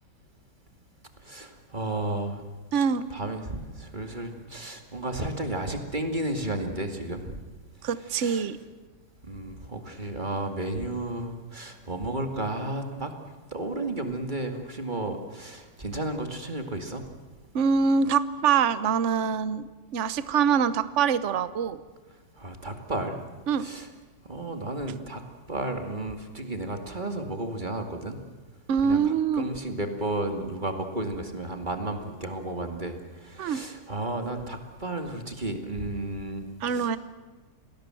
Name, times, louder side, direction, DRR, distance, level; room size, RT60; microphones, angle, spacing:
voice 1, 1.2-2.4 3.1-7.4 8.1-8.5 9.2-13.1 13.5-17.1 22.4-23.2 23.6-23.9 24.3-25.2 25.5-28.2 28.8-37.0, right 1 dB, 25° right, 5 dB, 2.3 m, -33 dB
voice 2, 2.7-3.1 7.8-8.6 17.5-21.8 23.5-23.7 28.7-29.4 33.4-33.6 36.6-37.0, right 6 dB, 45° right, 14 dB, 1.1 m, -24 dB
28.5 x 20.0 x 7.7 m, 1.3 s
omnidirectional pair, 2.1 m